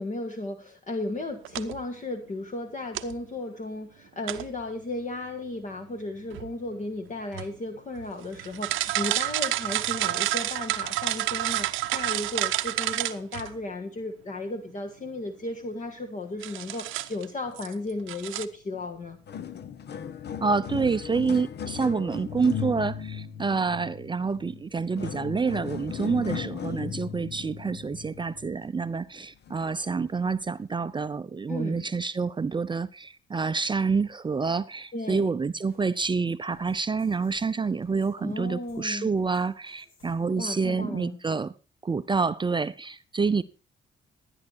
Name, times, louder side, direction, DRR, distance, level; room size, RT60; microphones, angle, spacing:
voice 1, 0.0-19.2 31.5-31.8 34.9-35.3 38.2-39.1 40.4-41.2, left 2 dB, 40° left, 1.5 m, -35 dB
sound 1, 1.4-1.8 2.9-3.2 4.3-4.6 6.3-6.8 7.3-7.5 8.0-13.5 16.4-17.2 17.6-17.7 18.1-18.4, right 15 dB, 90° right, 0.8 m, -29 dB
sound 2, 18.7-18.9 19.1-28.8 29.5-29.6 30.4-30.5, left 8 dB, 55° left, 1.0 m, -37 dB
voice 2, 20.4-41.5 41.8-43.4, right 4 dB, 25° right, 0.6 m, -28 dB
sound 3, 35.7-40.4, left 3 dB, 80° left, 5.0 m, -60 dB
13.5 x 9.7 x 4.4 m
cardioid pair, 90°, 20 cm